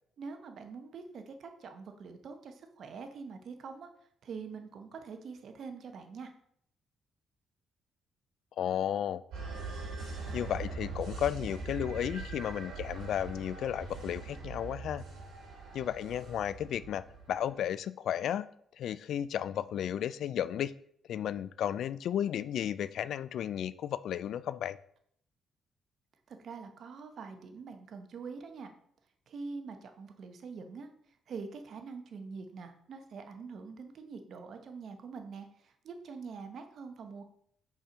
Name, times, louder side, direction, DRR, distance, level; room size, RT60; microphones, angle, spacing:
voice 1, 0.2-3.9 4.2-6.3 26.3-28.7 29.3-37.2, right 5 dB, 60° right, 6 dB, 0.9 m, -45 dB
voice 2, 8.6-9.2 10.3-15.0 15.7-18.5 18.8-20.7 21.1-24.8, left 10 dB, 70° left, 16 dB, 0.3 m, -33 dB
sound 1, 9.3-17.5, right 4 dB, 80° right, 2.7 m, -42 dB
5.6 x 4.5 x 5.0 m, 0.66 s
cardioid pair, 90°, 0 cm